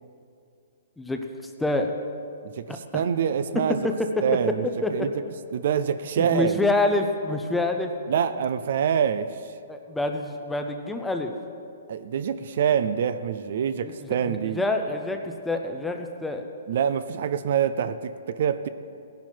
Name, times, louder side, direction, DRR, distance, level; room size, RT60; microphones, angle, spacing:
voice 1, 1.6-1.9 2.7-3.0 3.5-4.2 4.8-5.1 6.2-7.9 9.7-11.3 13.8-13.9 14.3-16.5, left 2 dB, 5° left, 4 dB, 0.6 m, -26 dB
voice 2, 2.4-3.8 4.2-5.1 5.5-6.6 8.1-9.5 11.9-14.6 16.7-18.7, right 8 dB, 50° right, 12 dB, 0.5 m, -25 dB
17.5 x 10.5 x 4.5 m, 2.4 s
hypercardioid pair, 170°, 0 cm